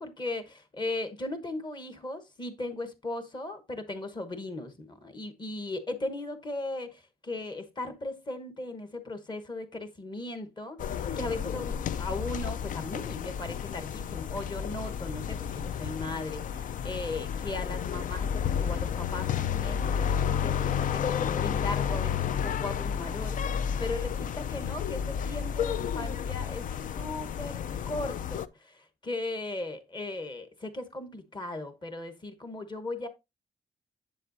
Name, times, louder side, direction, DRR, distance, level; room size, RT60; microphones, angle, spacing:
voice 1, 0.0-26.7 26.9-33.1, left 2 dB, 25° left, 1.1 m, -37 dB
sound 1, 10.8-28.5, left 8 dB, 55° left, 0.4 m, -31 dB
7.5 x 7.1 x 2.6 m
cardioid pair, 115°, 17 cm